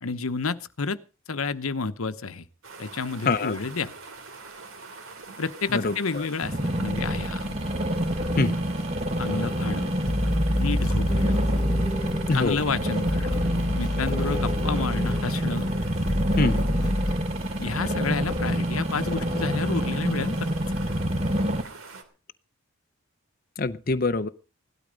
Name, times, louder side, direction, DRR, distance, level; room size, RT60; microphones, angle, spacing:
voice 1, 0.0-1.0 1.3-2.5 2.8-3.9 5.4-7.6 9.2-9.9 10.6-11.4 12.3-15.7 17.6-20.5, left 4 dB, 85° left, 13 dB, 0.9 m, -30 dB
sound 1, 2.6-22.0, right 4 dB, 80° right, 3.1 m, -44 dB
voice 2, 5.7-6.2 8.4-8.5 12.3-12.6 16.4-16.6 23.6-24.3, left 3 dB, 40° left, 9 dB, 0.7 m, -24 dB
sound 2, 6.4-21.6, equal, 30° right, 1.4 m, -27 dB
sound 3, 9.4-17.1, left 1 dB, 20° left, 1.3 m, -28 dB
17.5 x 12.0 x 5.2 m, 0.35 s
head